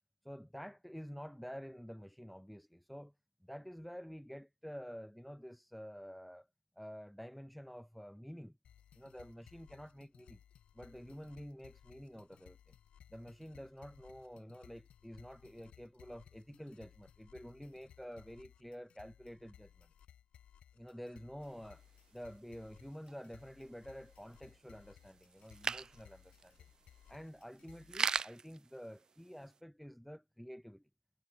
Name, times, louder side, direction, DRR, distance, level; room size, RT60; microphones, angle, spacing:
voice 1, 0.2-3.1 3.4-6.5 6.8-8.6 9.0-10.4 10.7-12.8 13.1-19.9 20.7-21.8 22.1-26.6 27.1-30.9, equal, ahead, 0.9 m, -49 dB
sound 1, 8.6-28.2, left 10 dB, 45° left, 1.0 m, -62 dB
sound 2, 21.4-29.6, right 5 dB, 25° right, 0.5 m, -43 dB
figure-of-eight pair, 60°, 3 cm